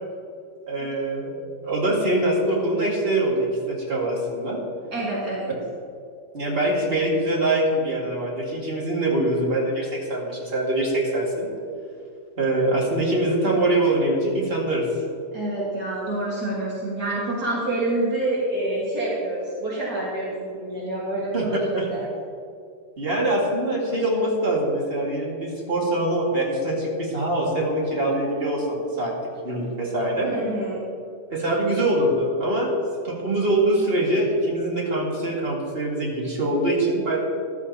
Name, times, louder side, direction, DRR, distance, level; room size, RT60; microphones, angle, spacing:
voice 1, 0.7-4.6 6.3-11.5 12.4-14.9 21.3-21.5 21.7-21.9 23.0-29.1 29.4-30.3 31.3-32.7 33.0-37.2, right 1 dB, 35° right, -3 dB, 2.3 m, -23 dB
voice 2, 4.9-5.5 15.3-22.0 30.2-30.9, right 2 dB, 65° right, -6 dB, 2.4 m, -27 dB
14.0 x 12.0 x 2.9 m, 2.4 s
omnidirectional pair, 1.9 m